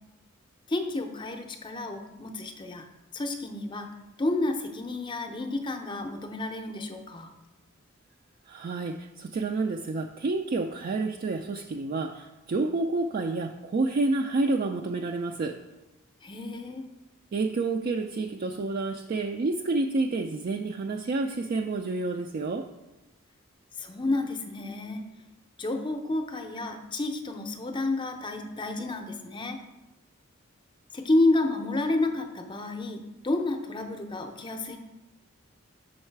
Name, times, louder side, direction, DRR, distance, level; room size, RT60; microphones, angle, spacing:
voice 1, 0.7-2.9 3.1-3.9 4.2-7.3 16.2-16.9 23.8-25.1 25.6-29.6 30.9-34.8, left 2 dB, 25° left, 6 dB, 0.6 m, -30 dB
voice 2, 8.5-15.6 17.3-22.7, right 3 dB, 45° right, 3 dB, 0.3 m, -29 dB
6.4 x 4.7 x 4.5 m, 1.0 s
head